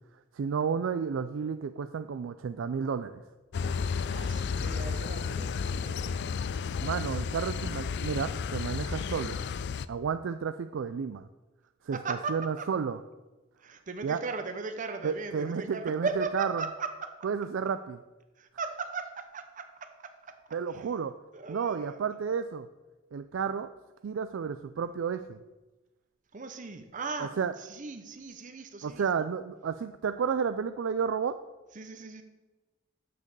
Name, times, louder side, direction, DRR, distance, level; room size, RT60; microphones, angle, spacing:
voice 1, 0.3-3.2 6.8-9.4 9.9-11.3 11.8-12.0 12.3-13.0 14.0-14.2 15.0-16.6 17.2-18.0 20.5-21.1 21.5-22.7 23.1-23.7 24.0-25.4 27.2-27.5 28.8-31.4, right 6 dB, 75° right, 10 dB, 0.4 m, -31 dB
sound 1, 3.5-9.9, left 5 dB, 60° left, 0.4 m, -32 dB
voice 2, 4.1-6.5 11.9-12.7 13.6-17.1 18.4-20.4 20.7-20.9 21.3-22.0 26.3-29.1 31.7-32.2, right 4 dB, 40° right, 7 dB, 0.7 m, -38 dB
7.5 x 6.8 x 6.6 m, 1.1 s
head